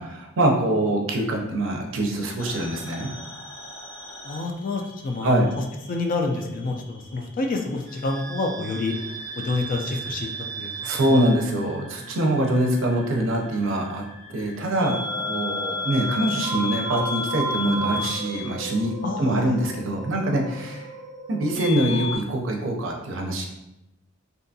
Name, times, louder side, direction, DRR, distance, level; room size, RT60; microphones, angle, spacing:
voice 1, 0.0-3.1 5.2-5.5 10.8-14.0 14.3-20.9 21.3-23.5, right 1 dB, 70° right, 1 dB, 0.5 m, -24 dB
sound 1, 2.4-5.2 5.5-6.7 7.9-22.2, equal, 80° left, 1.4 m, -33 dB
voice 2, 4.2-5.4 5.9-8.9 9.4-10.3 10.6-10.7 11.1-11.2 19.0-19.7, left 3 dB, 45° left, 3 dB, 0.3 m, -28 dB
2.6 x 2.3 x 2.6 m, 0.92 s
head